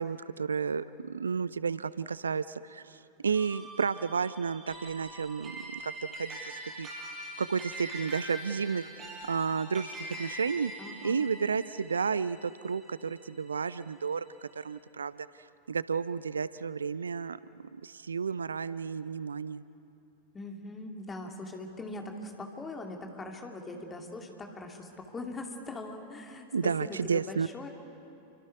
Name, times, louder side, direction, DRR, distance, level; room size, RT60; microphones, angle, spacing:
voice 1, 0.0-6.9 7.4-8.9 9.2-10.7 11.0-15.3 15.7-19.6 26.5-27.5, right 5 dB, 75° right, 17 dB, 0.4 m, -32 dB
sound 1, 3.3-13.9, right 1 dB, 30° right, 5.5 m, -44 dB
voice 2, 10.8-11.3 20.3-26.5 26.8-27.7, left 2 dB, 15° left, 2 dB, 2.7 m, -41 dB
30.0 x 24.5 x 4.8 m, 2.6 s
figure-of-eight pair, 90°, 0 cm